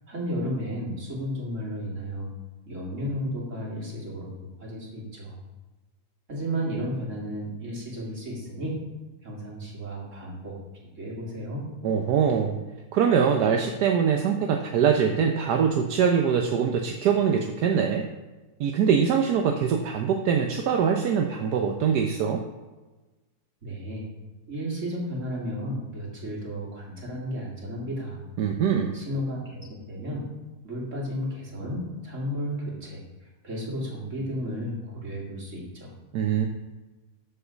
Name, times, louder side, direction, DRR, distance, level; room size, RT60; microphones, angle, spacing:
voice 1, 0.1-2.3 2.7-5.4 6.3-8.8 9.2-10.6 11.0-11.6 23.6-24.1 24.5-28.2 28.9-30.3 30.6-35.9, equal, 50° right, -3 dB, 2.9 m, -33 dB
voice 2, 11.8-12.6 12.9-18.0 18.6-22.4 28.4-28.9 36.1-36.5, right 7 dB, 80° right, 3 dB, 1.3 m, -23 dB
13.5 x 4.7 x 5.1 m, 1.2 s
omnidirectional pair, 1.7 m